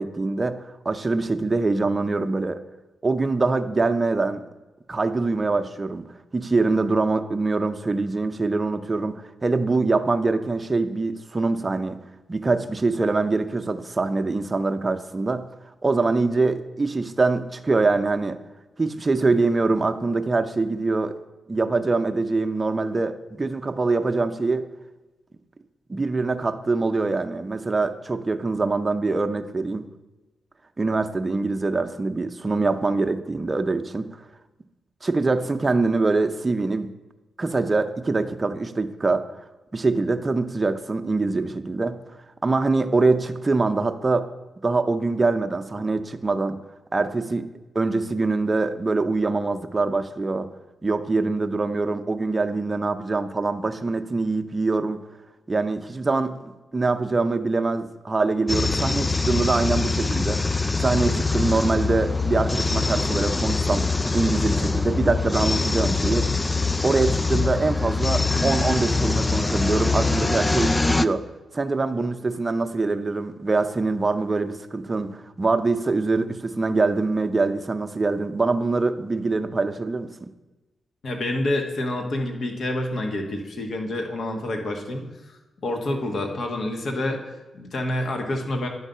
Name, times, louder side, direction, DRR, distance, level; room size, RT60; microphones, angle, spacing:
voice 1, 0.0-2.6 3.0-4.4 4.9-6.0 6.3-12.0 12.3-15.4 15.8-18.4 18.8-21.2 21.5-24.6 25.9-29.9 30.8-34.2 35.0-36.9 37.4-39.3 39.7-42.0 42.4-44.3 44.6-46.6 46.9-47.5 47.7-50.5 50.8-55.0 55.5-60.4 60.8-63.9 64.1-66.3 66.8-71.2 71.5-80.3, right 3 dB, 35° right, 7 dB, 0.6 m, -24 dB
sound 1, 58.5-71.1, left 3 dB, 25° left, 0.3 m, -23 dB
voice 2, 81.0-85.4 85.6-88.7, left 1 dB, 65° left, 3 dB, 1.3 m, -28 dB
10.0 x 4.0 x 5.5 m, 1.1 s
supercardioid pair, 50°, 0 cm